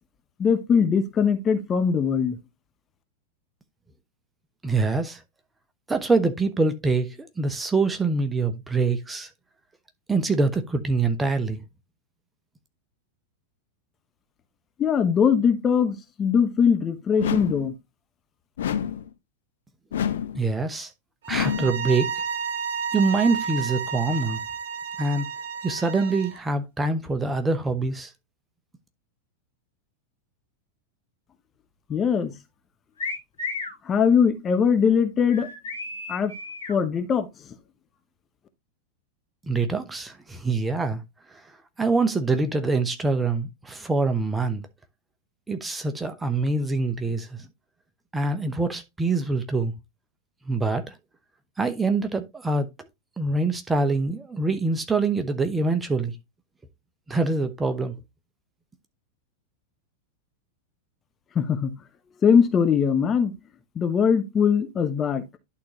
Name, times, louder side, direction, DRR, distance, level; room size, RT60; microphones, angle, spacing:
voice 1, 0.4-2.4 14.8-17.8 31.9-32.3 33.8-35.5 36.1-36.3 36.7-37.3 61.3-61.7 62.2-63.3 63.8-65.2, left 6 dB, 25° left, 0.9 m, -21 dB
voice 2, 4.6-5.2 5.9-9.3 10.1-11.6 20.3-20.9 21.3-22.1 22.9-24.4 25.0-25.3 25.6-28.1 39.4-41.0 41.3-41.4 41.8-44.6 45.5-47.5 48.1-49.7 50.5-50.9 51.6-52.7 53.2-56.1 57.1-57.9, right 3 dB, 10° right, 1.0 m, -25 dB
sound 1, 17.2-17.7 18.6-19.1 19.9-20.4 21.3-21.8, left 9 dB, 60° left, 0.6 m, -27 dB
sound 2, 21.2-26.4, right 6 dB, 60° right, 0.9 m, -31 dB
sound 3, 33.0-33.8 35.3-36.8, left 3 dB, 75° left, 3.0 m, -33 dB
11.5 x 3.9 x 3.0 m
figure-of-eight pair, 90°, 0 cm